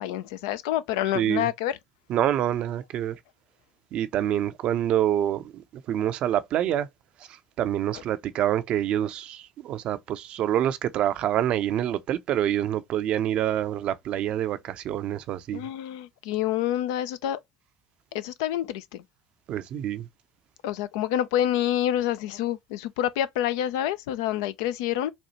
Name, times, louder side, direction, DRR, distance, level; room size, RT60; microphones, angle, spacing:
voice 1, 0.0-1.8 15.5-17.4 18.1-19.0 20.6-25.1, left 12 dB, 75° left, 0.4 m, -27 dB
voice 2, 1.1-1.5 2.1-3.2 3.9-6.9 7.2-15.7 19.5-20.1, right 11 dB, 60° right, 0.5 m, -26 dB
4.1 x 2.3 x 2.9 m
hypercardioid pair, 60°, 2 cm